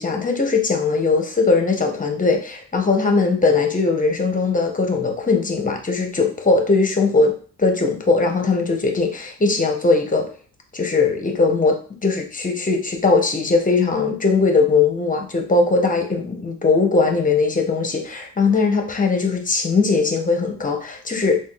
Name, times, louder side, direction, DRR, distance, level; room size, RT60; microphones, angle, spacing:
voice 1, 0.0-10.3 10.7-21.4, left 4 dB, 25° left, 3 dB, 0.7 m, -19 dB
3.5 x 2.3 x 2.4 m, 0.41 s
supercardioid pair, 70°, 33 cm